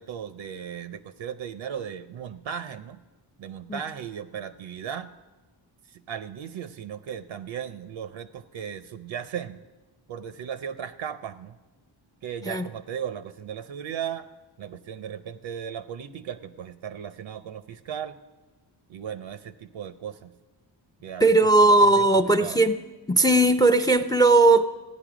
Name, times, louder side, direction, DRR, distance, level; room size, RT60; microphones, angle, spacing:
voice 1, 0.0-3.0 3.4-5.1 5.9-9.6 10.1-11.6 12.2-14.3 14.6-18.1 18.9-20.3 21.0-21.3 21.6-22.6, right 8 dB, 75° right, 12 dB, 0.7 m, -36 dB
voice 2, 21.2-22.8 23.1-24.7, right 2 dB, 10° left, 10 dB, 0.5 m, -18 dB
15.0 x 9.8 x 5.0 m, 1.2 s
cardioid pair, 85°, 47 cm